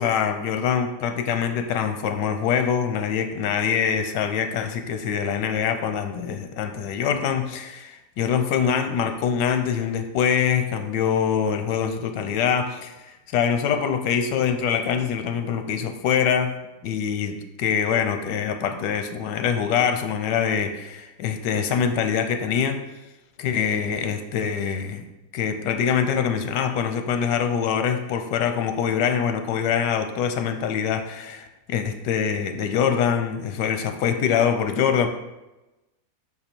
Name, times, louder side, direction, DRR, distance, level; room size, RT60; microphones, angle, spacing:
voice 1, 0.0-16.6 16.8-22.8 23.4-25.0 25.3-35.1, left 7 dB, 90° left, 7 dB, 1.3 m, -24 dB
5.5 x 4.3 x 4.4 m, 1.0 s
omnidirectional pair, 1.8 m